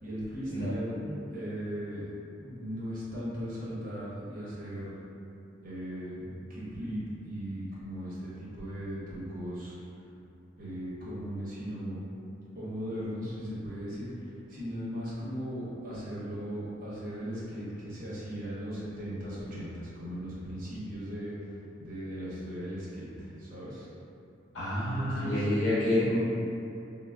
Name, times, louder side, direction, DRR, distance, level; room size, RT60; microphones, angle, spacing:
voice 1, 0.0-1.0 1.3-2.1 2.4-5.0 5.6-9.8 10.6-12.0 12.5-21.5 21.8-23.9 24.8-25.5, equal, 45° right, -8 dB, 0.7 m, -38 dB
voice 2, 24.5-26.2, left 1 dB, 80° left, -11 dB, 0.8 m, -28 dB
3.3 x 2.0 x 2.2 m, 2.7 s
head